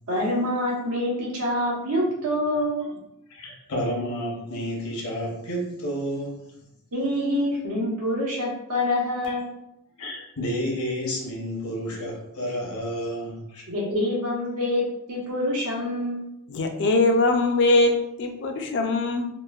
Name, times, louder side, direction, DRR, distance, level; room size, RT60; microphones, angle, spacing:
voice 1, 0.1-2.8 6.9-9.5 13.7-14.8 15.1-16.3, left 1 dB, 90° right, -4 dB, 1.0 m, -26 dB
voice 2, 3.3-6.5 9.3-9.4 10.0-13.6, equal, 75° left, -2 dB, 0.8 m, -30 dB
voice 3, 16.5-19.3, left 2 dB, 50° left, 4 dB, 0.3 m, -21 dB
3.0 x 2.1 x 2.3 m, 0.84 s
head